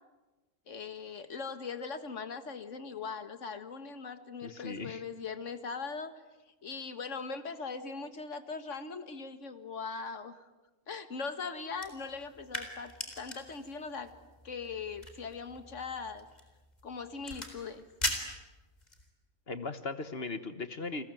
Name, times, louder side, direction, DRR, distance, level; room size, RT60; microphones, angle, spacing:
voice 1, 0.7-6.1 6.6-10.5 10.9-14.1 14.4-16.3 16.8-17.9, left 5 dB, 70° left, 10 dB, 2.0 m, -40 dB
voice 2, 4.4-5.0 19.5-21.0, left 3 dB, 50° left, 11 dB, 1.6 m, -38 dB
sound 1, 11.7-19.1, left 1 dB, 30° left, 4.2 m, -41 dB
29.5 x 21.0 x 9.2 m, 1.2 s
omnidirectional pair, 1.3 m